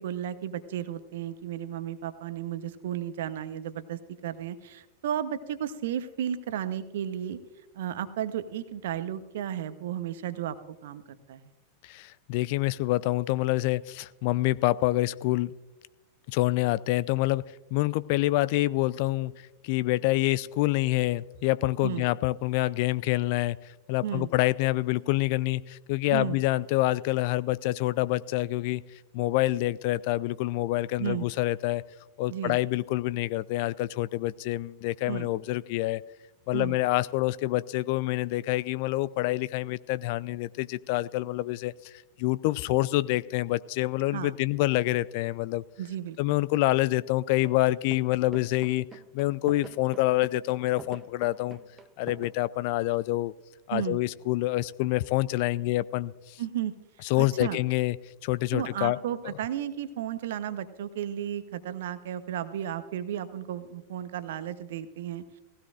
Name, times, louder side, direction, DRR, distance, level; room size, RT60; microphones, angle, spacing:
voice 1, 0.0-7.4 7.7-11.4 21.8-22.0 24.0-24.3 26.1-26.3 31.0-31.3 32.3-32.6 35.1-35.3 36.5-36.8 44.1-44.3 45.8-46.4 53.7-54.0 56.4-56.7 57.2-57.6 58.5-65.2, right 10 dB, 55° right, 13 dB, 0.8 m, -33 dB
voice 2, 11.8-15.5 16.3-17.4 17.7-23.6 23.9-28.8 29.1-31.8 32.2-36.0 36.5-41.9 42.2-45.6 46.2-48.9 49.1-51.6 52.0-53.3 53.7-56.4 57.0-58.0 58.2-59.0, left 17 dB, 45° left, 19 dB, 0.3 m, -27 dB
sound 1, 47.4-47.6 47.9-52.3, right 6 dB, 20° right, 0.7 m, -45 dB
18.5 x 16.0 x 2.5 m, 1.1 s
figure-of-eight pair, 90°, 0 cm